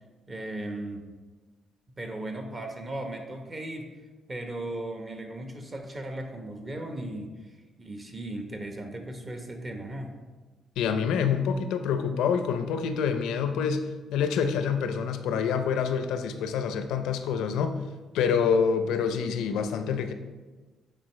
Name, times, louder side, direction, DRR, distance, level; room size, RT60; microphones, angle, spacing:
voice 1, 0.3-1.1 2.0-3.9 4.3-7.3 7.8-10.2, right 1 dB, 30° right, 4 dB, 1.0 m, -36 dB
voice 2, 10.8-17.8 18.1-20.1, left 6 dB, 90° left, 8 dB, 0.5 m, -27 dB
8.9 x 4.5 x 3.2 m, 1.3 s
cardioid pair, 90°, 0 cm